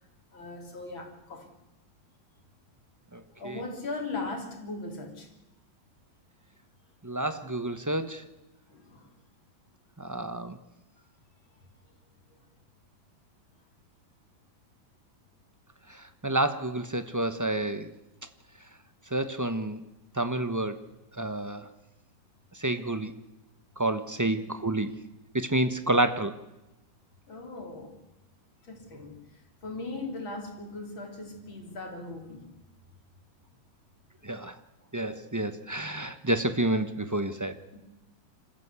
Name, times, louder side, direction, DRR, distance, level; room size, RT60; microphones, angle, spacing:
voice 1, 0.3-1.5 3.4-5.3 8.7-9.1 27.3-28.0 28.6-29.2 29.6-32.5 37.7-37.8, left 3 dB, 85° left, 4.1 m, -38 dB
voice 2, 3.1-3.6 7.0-8.2 10.0-10.6 15.9-17.9 19.1-19.8 20.2-20.8 21.2-21.7 22.6-23.1 23.8-24.9 25.3-26.3 34.2-34.5 34.9-37.6, right 1 dB, 15° right, 0.6 m, -29 dB
26.5 x 14.5 x 8.2 m
omnidirectional pair, 2.1 m